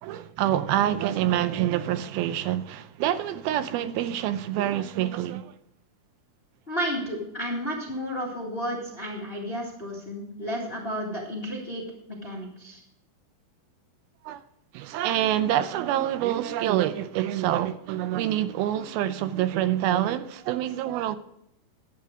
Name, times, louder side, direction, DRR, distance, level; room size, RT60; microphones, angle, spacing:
voice 1, 0.0-5.5 14.2-14.4 14.7-21.2, right 12 dB, 85° right, 2.5 m, -26 dB
voice 2, 6.7-12.8, equal, 30° left, 1.1 m, -32 dB
11.5 x 8.5 x 5.0 m
omnidirectional pair, 4.3 m